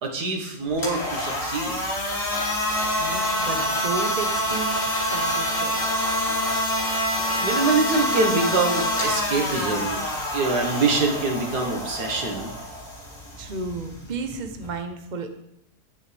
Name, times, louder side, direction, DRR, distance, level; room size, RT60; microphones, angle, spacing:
voice 1, 0.0-1.8 7.4-10.0 10.3-12.5, right 3 dB, 90° right, 2 dB, 2.2 m, -24 dB
sound 1, 0.7-14.7, equal, 55° left, 3.0 m, -26 dB
voice 2, 3.0-5.8 13.4-15.3, right 4 dB, 35° right, 6 dB, 1.0 m, -33 dB
17.5 x 7.1 x 3.5 m, 0.74 s
omnidirectional pair, 1.7 m